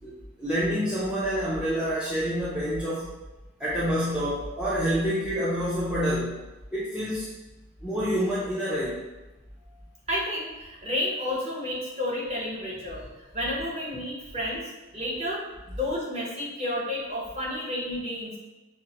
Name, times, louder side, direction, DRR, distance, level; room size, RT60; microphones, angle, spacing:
voice 1, 0.0-3.1 3.6-6.4 6.7-7.3 7.8-9.0, equal, 5° right, -10 dB, 0.4 m, -27 dB
voice 2, 10.1-18.4, left 1 dB, 30° right, -5 dB, 0.9 m, -31 dB
5.4 x 2.1 x 2.8 m, 1.1 s
head